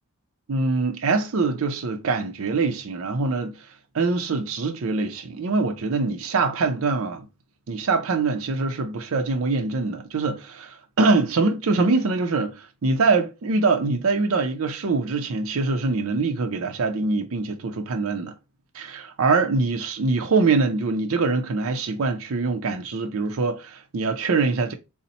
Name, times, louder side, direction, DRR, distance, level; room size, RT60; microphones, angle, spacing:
voice 1, 0.5-3.6 3.9-7.3 7.7-18.3 18.7-24.7, right 3 dB, 70° right, 0.5 m, -24 dB
4.1 x 2.1 x 4.0 m
head